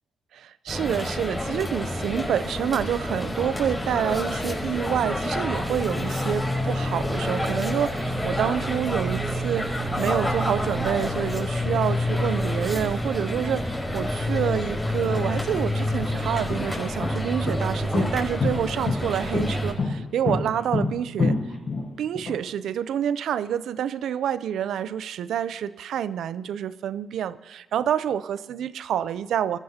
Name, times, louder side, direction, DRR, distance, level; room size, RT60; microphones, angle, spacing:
voice 1, 0.3-21.4 22.0-29.6, right 9 dB, 85° right, 16 dB, 0.5 m, -28 dB
sound 1, 0.7-19.7, left 1 dB, 5° left, 4.7 m, -28 dB
sound 2, 15.0-15.1 15.8-22.3, left 4 dB, 55° left, 5.5 m, -27 dB
24.0 x 13.5 x 2.9 m, 1.2 s
cardioid pair, 85°, 0 cm